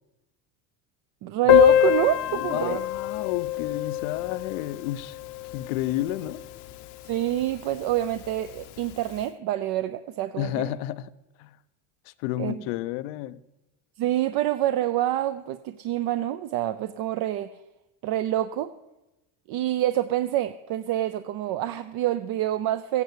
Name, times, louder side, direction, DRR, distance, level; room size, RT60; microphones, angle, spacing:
voice 1, 1.2-2.8 7.0-10.7 12.4-12.6 14.0-17.5 18.0-18.7 19.5-23.0, right 13 dB, 50° right, 0.6 m, -27 dB
Piano, 1.5-6.8 7.1-7.2 7.4-7.6 7.9-8.0 8.8-8.9, left 12 dB, 55° left, 0.8 m, -24 dB
voice 2, 2.3-5.2 5.5-6.4 10.4-11.1 11.4-11.6 12.2-13.4, left 14 dB, 85° left, 0.8 m, -31 dB
15.5 x 9.7 x 8.2 m
cardioid pair, 150°, 46 cm